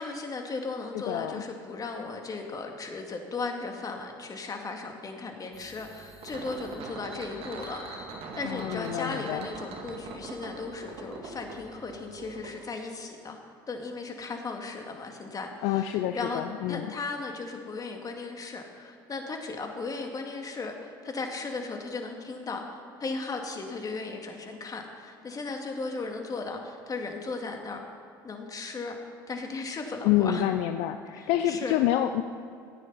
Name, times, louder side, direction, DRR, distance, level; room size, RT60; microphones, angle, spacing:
voice 1, 0.0-8.1 8.4-13.4 13.7-16.4 16.7-27.8 28.2-29.0 29.3-30.5 31.2-31.8, left 3 dB, 30° left, 3 dB, 2.1 m, -36 dB
voice 2, 0.9-1.4 8.4-9.5 15.6-16.9 30.0-32.2, left 12 dB, 65° left, 8 dB, 0.5 m, -27 dB
sound 1, 5.5-12.5, right 3 dB, 55° right, 2.1 m, -42 dB
15.0 x 9.2 x 5.6 m, 2.4 s
hypercardioid pair, 70°, 12 cm